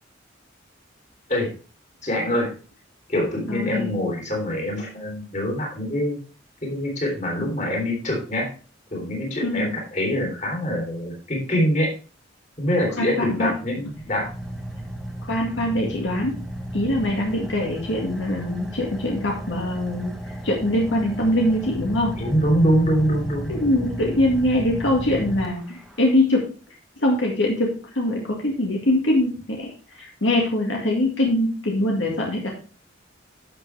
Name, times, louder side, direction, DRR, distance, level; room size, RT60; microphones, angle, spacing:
voice 1, 2.0-2.5 3.1-6.2 6.6-8.5 8.9-11.9 12.6-14.3 22.1-23.5, equal, 40° left, -1 dB, 3.5 m, -24 dB
voice 2, 3.5-3.9 9.4-9.7 13.0-13.5 15.2-16.4 16.7-22.1 23.5-26.5 27.0-32.5, left 1 dB, 75° left, -1 dB, 2.0 m, -23 dB
Car / Idling, 13.4-26.1, right 1 dB, ahead, 1.2 m, -34 dB
11.5 x 6.6 x 3.4 m, 0.37 s
head